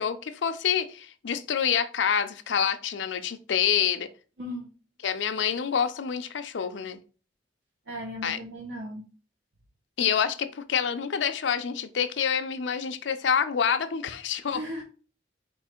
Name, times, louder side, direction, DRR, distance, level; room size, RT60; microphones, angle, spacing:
voice 1, 0.0-4.1 5.0-7.0 8.2-8.4 10.0-14.6, left 7 dB, 85° left, 10 dB, 0.5 m, -27 dB
voice 2, 4.4-4.7 7.9-9.1 14.5-14.8, equal, 80° right, 0 dB, 0.9 m, -36 dB
4.5 x 2.4 x 4.3 m, 0.37 s
head